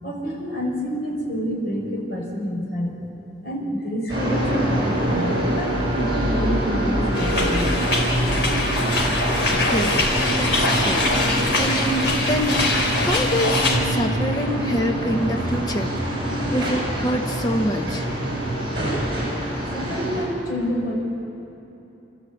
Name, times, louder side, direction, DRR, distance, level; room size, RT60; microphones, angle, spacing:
voice 1, 0.0-2.9 3.4-7.9 19.7-20.9, equal, 55° left, -2 dB, 5.5 m, -28 dB
sound 1, 4.1-20.3, right 1 dB, 30° right, 7.1 m, -25 dB
sound 2, 7.1-13.8, left 2 dB, 80° left, 3.9 m, -23 dB
voice 2, 9.7-10.0 10.3-18.1, equal, 20° left, 4 dB, 1.2 m, -26 dB
27.0 x 13.5 x 8.6 m, 2.9 s
head